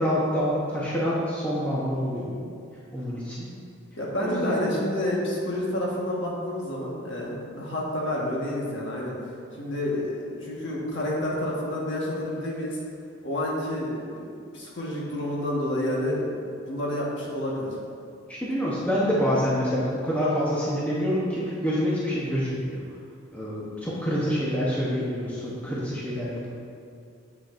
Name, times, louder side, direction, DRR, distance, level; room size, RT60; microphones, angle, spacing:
voice 1, 0.0-2.4 2.9-3.5 4.2-4.6 18.3-22.8 23.3-26.5, equal, 5° left, -8 dB, 0.8 m, -27 dB
voice 2, 4.0-9.1 9.6-12.8 13.2-17.7, left 1 dB, 65° left, -4 dB, 1.3 m, -29 dB
7.7 x 6.5 x 2.5 m, 2.4 s
head